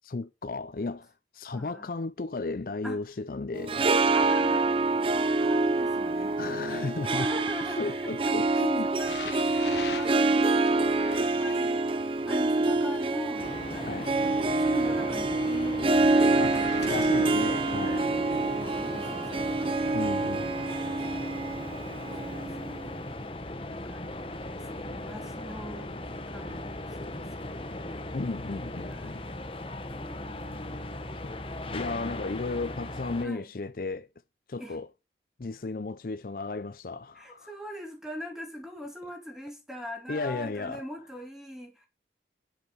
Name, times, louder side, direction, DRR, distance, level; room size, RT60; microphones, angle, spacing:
voice 1, 0.0-3.9 6.4-7.3 7.8-8.9 13.9-14.1 16.4-18.1 19.9-20.6 28.1-29.2 31.2-31.3 31.7-34.1 34.5-34.9 35.4-37.5 40.1-40.8, left 3 dB, 50° left, 0.5 m, -34 dB
voice 2, 1.5-1.9 2.8-3.0 4.1-4.7 5.1-6.4 7.0-11.1 11.4-17.2 18.5-20.1 22.2-22.9 23.6-24.2 24.5-25.9 26.3-27.8 28.8-29.3 29.9-30.7 33.2-33.5 34.6-34.8 37.2-41.9, equal, ahead, 3.6 m, -41 dB
Harp, 3.5-22.9, right 3 dB, 30° right, 0.6 m, -26 dB
sound 1, 9.0-12.1 13.0-14.8 15.9-18.4 19.2-19.5 20.3-20.4, left 5 dB, 75° left, 1.5 m, -43 dB
sound 2, 13.4-33.3, left 1 dB, 30° left, 1.3 m, -38 dB
10.0 x 8.2 x 5.6 m
head